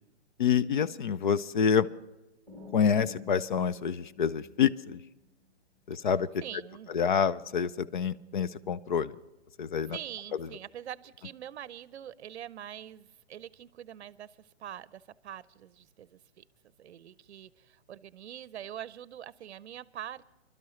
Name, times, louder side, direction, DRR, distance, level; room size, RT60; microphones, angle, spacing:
voice 1, 0.4-1.9 2.7-5.0 5.9-6.4 6.9-9.2 9.6-10.0 10.3-10.5, left 7 dB, 45° left, 16 dB, 0.5 m, -27 dB
sound 1, 2.5-5.3, left 3 dB, 5° left, 1.4 m, -49 dB
voice 2, 6.4-7.0 9.9-20.3, right 10 dB, 75° right, 18 dB, 0.6 m, -44 dB
24.5 x 12.5 x 3.1 m, 0.99 s
hypercardioid pair, 170°, 34 cm